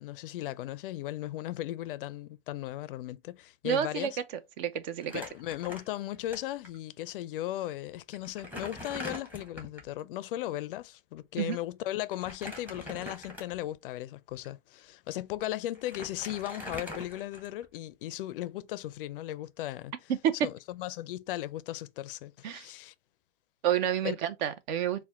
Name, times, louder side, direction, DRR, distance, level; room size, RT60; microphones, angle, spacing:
voice 1, 0.0-4.2 5.1-19.9 20.4-22.9 24.0-24.2, left 14 dB, 60° left, 0.4 m, -37 dB
voice 2, 3.6-4.1 4.6-5.2 11.4-11.6 20.2-20.3 22.4-22.7 23.6-25.0, right 10 dB, 45° right, 0.7 m, -29 dB
Crumpling crinkling, 5.0-6.4 6.6-6.8 7.6-7.7 8.1-9.9 12.1-13.7 14.3-14.5 15.3-15.4 15.7-17.8, left 1 dB, 5° right, 1.0 m, -43 dB
4.2 x 2.2 x 3.5 m
hypercardioid pair, 135°, 31 cm